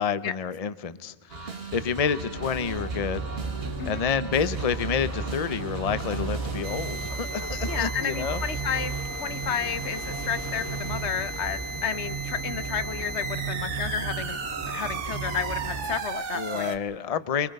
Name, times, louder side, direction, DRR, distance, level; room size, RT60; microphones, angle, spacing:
voice 1, 0.0-3.3 3.9-8.4 16.3-17.5, left 7 dB, 35° left, 14 dB, 0.8 m, -29 dB
sound 1, 1.3-9.4, right 3 dB, 60° right, 1.6 m, -40 dB
sound 2, 2.3-15.9, right 4 dB, 15° left, 2.8 m, -34 dB
sound 3, 6.6-16.8, right 3 dB, 85° right, 1.5 m, -36 dB
voice 2, 7.6-8.9 9.2-14.4 14.7-16.7, left 7 dB, 75° left, 13 dB, 1.2 m, -31 dB
27.0 x 23.5 x 5.4 m, 1.2 s
omnidirectional pair, 1.2 m